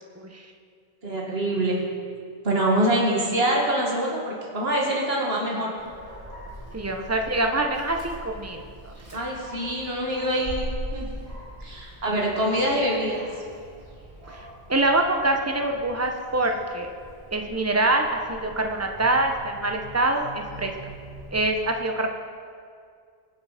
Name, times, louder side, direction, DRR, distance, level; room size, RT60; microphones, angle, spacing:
voice 1, 1.0-1.8 2.4-5.7 9.1-11.1 11.6-13.2, right 1 dB, 75° right, -2 dB, 2.4 m, -25 dB
Dog, 5.8-21.5, equal, 35° right, 2.6 m, -41 dB
voice 2, 6.7-8.9 14.3-16.9 17.3-20.7 21.3-22.1, right 2 dB, 15° right, 3 dB, 1.0 m, -25 dB
22.5 x 8.0 x 5.1 m, 2.2 s
omnidirectional pair, 1.0 m